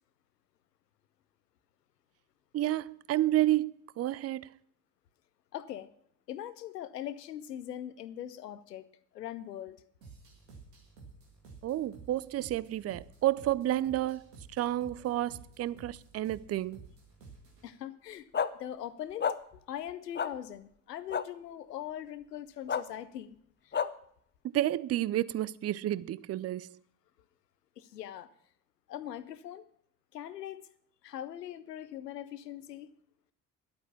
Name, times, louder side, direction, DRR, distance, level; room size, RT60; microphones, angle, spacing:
voice 1, 2.5-4.5 11.6-16.8 24.5-26.8, right 14 dB, 35° right, 0.5 m, -30 dB
voice 2, 5.5-5.9 6.3-8.9 9.1-9.8 17.6-18.3 18.6-23.4 23.6-23.8 27.8-28.3 28.9-29.6 30.1-30.6 31.0-32.9, left 11 dB, 90° left, 0.7 m, -41 dB
sound 1, 10.0-17.7, right 4 dB, 85° right, 2.3 m, -53 dB
sound 2, 18.3-18.5 19.2-19.3 20.1-20.3 21.1-21.2 22.7-22.8 23.7-23.9, left 7 dB, 20° left, 0.7 m, -29 dB
11.5 x 8.5 x 7.0 m
figure-of-eight pair, 45°, 47 cm